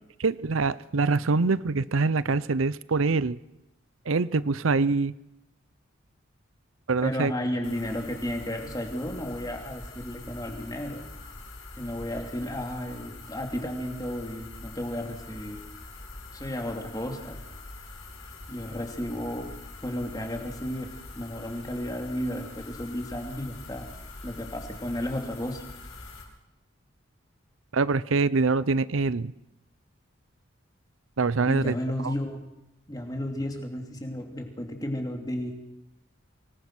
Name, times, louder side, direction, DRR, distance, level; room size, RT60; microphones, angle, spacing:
voice 1, 0.2-3.4 4.1-5.1 6.9-7.3 27.7-29.3 31.2-31.8 32.0-32.1, right 4 dB, 85° right, 18 dB, 0.7 m, -24 dB
voice 2, 7.0-11.1 11.8-15.6 16.3-17.4 18.5-19.5 19.8-23.9 24.2-25.6 31.5-32.4 32.9-35.5, left 1 dB, 20° left, 3 dB, 2.9 m, -33 dB
sound 1, 7.6-26.2, left 2 dB, 90° left, 6.4 m, -44 dB
25.5 x 20.0 x 6.2 m, 0.87 s
head